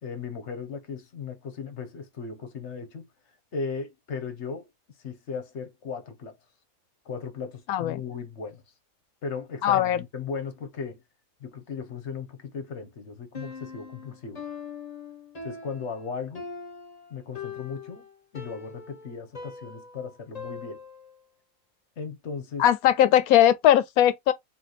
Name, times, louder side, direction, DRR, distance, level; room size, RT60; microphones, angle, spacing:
voice 1, 0.0-3.1 3.5-4.7 5.0-6.4 7.0-8.6 9.2-11.0 11.4-14.4 15.4-16.5 17.1-18.1 18.3-20.8 22.0-22.6, left 5 dB, 55° left, 1.2 m, -36 dB
voice 2, 7.7-8.0 9.6-10.0 22.6-24.3, left 11 dB, 90° left, 1.1 m, -20 dB
Piano, 13.3-21.2, left 5 dB, 30° left, 1.0 m, -41 dB
3.8 x 3.2 x 4.0 m
omnidirectional pair, 1.5 m